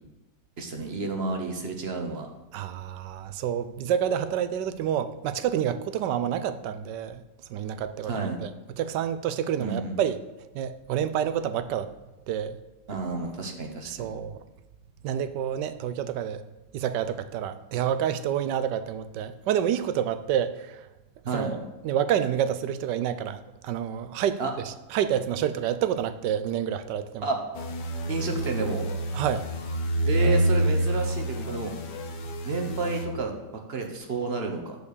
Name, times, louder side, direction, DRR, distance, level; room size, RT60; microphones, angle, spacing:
voice 1, 0.6-2.3 8.1-8.4 9.6-10.0 12.9-14.1 21.2-21.5 24.4-24.5 27.2-27.4 28.1-28.9 30.0-31.7 32.4-34.8, right 3 dB, 40° right, 3 dB, 1.1 m, -31 dB
voice 2, 2.5-7.2 7.5-8.5 8.8-10.2 10.5-11.9 12.3-12.6 13.9-14.4 15.0-16.4 16.7-20.8 21.3-24.4 24.6-27.3 29.1-29.5, right 9 dB, 80° right, 12 dB, 1.2 m, -28 dB
sound 1, 27.6-33.1, right 1 dB, 75° left, 1.5 m, -27 dB
9.5 x 4.9 x 6.7 m, 1.0 s
omnidirectional pair, 1.9 m